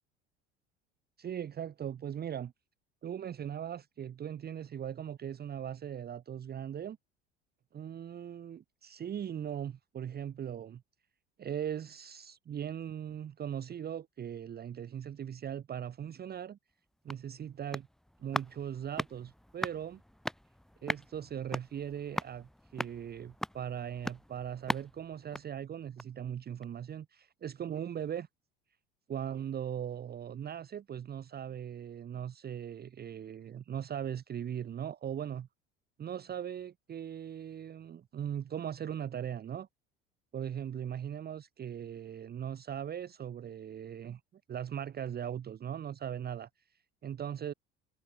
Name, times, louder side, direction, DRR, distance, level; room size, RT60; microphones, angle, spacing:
voice 1, 1.2-2.5 3.0-7.0 7.7-10.8 11.4-16.6 17.0-17.9 18.2-20.0 20.8-28.3 29.1-35.5 36.0-39.7 40.3-44.2 44.5-46.5 47.0-47.5, right 9 dB, 30° right, 0.9 m, -39 dB
sound 1, 16.7-26.3 26.6-26.7, equal, ahead, 0.6 m, -41 dB
hypercardioid pair, 65°, 30 cm